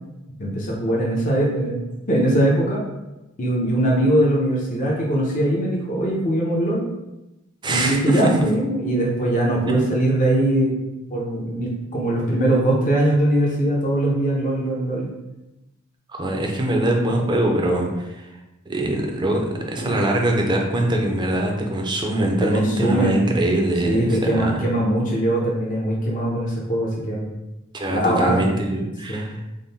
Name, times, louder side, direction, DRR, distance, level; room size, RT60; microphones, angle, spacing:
voice 1, 0.4-1.7 2.1-2.8 3.4-6.8 7.7-10.8 11.1-15.1 19.9-20.0 22.4-23.2 23.8-27.3 27.9-28.4 29.1-29.3, right 1 dB, 40° left, -3 dB, 0.6 m, -21 dB
voice 2, 7.6-8.3 9.7-9.8 16.1-18.3 18.7-24.6 27.7-29.4, right 1 dB, 20° right, 1 dB, 0.5 m, -22 dB
3.6 x 2.1 x 4.0 m, 0.99 s
head